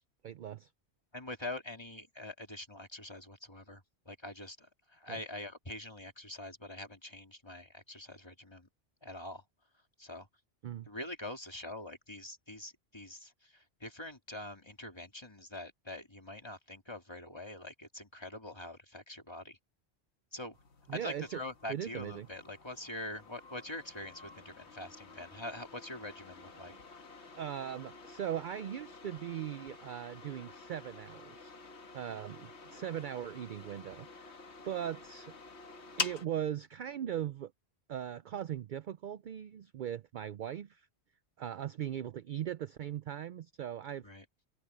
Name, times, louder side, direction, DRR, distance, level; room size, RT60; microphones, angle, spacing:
voice 1, 0.2-0.7 5.1-5.2 10.6-10.9 20.9-21.4 21.7-22.3 27.4-31.5 31.9-34.3 34.6-35.3 36.0-37.5 37.9-40.9 41.4-44.1, right 10 dB, 60° right, 0.6 m, -39 dB
voice 2, 1.1-8.7 9.0-9.4 10.0-10.3 10.9-19.6 20.3-20.6 20.9-26.7 32.1-32.2 44.0-44.2, left 1 dB, 25° left, 2.8 m, -44 dB
sound 1, 20.5-36.3, left 4 dB, 80° left, 1.8 m, -47 dB
omnidirectional pair, 1.1 m